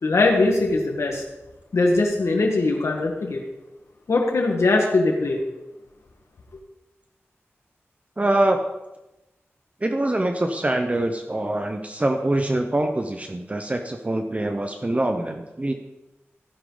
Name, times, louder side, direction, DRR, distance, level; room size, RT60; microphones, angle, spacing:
voice 1, 0.0-1.2 1.7-3.4 4.1-5.4, left 2 dB, 85° left, 0 dB, 1.6 m, -21 dB
voice 2, 8.2-8.6 9.8-15.7, right 1 dB, 30° right, 5 dB, 0.9 m, -24 dB
15.5 x 10.0 x 4.0 m, 1.0 s
wide cardioid pair, 65°, 5 cm